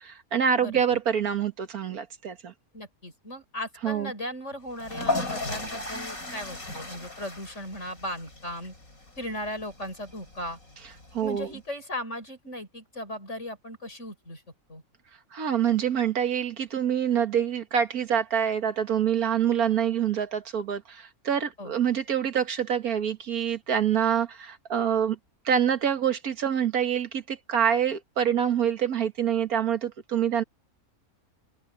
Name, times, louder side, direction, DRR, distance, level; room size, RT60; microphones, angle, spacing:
voice 1, 0.0-2.5 3.8-4.1 11.1-11.5 15.3-25.2 25.5-30.4, right 8 dB, 85° right, 2.0 m, -26 dB
voice 2, 2.7-8.7 9.2-10.6 11.2-14.4 14.7-14.8 21.6-21.7, left 1 dB, 55° left, 8.2 m, -37 dB
sound 1, 4.7-11.5, left 2 dB, 70° left, 6.4 m, -36 dB
open air
omnidirectional pair, 1.5 m